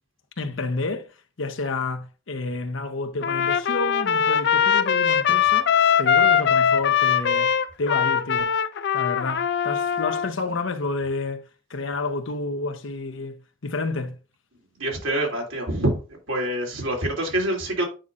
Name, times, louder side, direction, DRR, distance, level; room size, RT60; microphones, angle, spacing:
voice 1, 0.4-5.7 6.0-7.5 7.8-8.5 8.9-11.4 11.7-14.2, left 3 dB, 75° left, 0.8 m, -30 dB
Trumpet, 3.2-10.3, left 8 dB, 60° left, 0.4 m, -21 dB
voice 2, 14.8-16.0 16.3-17.9, right 1 dB, 80° right, 2.9 m, -25 dB
9.0 x 5.4 x 2.5 m
head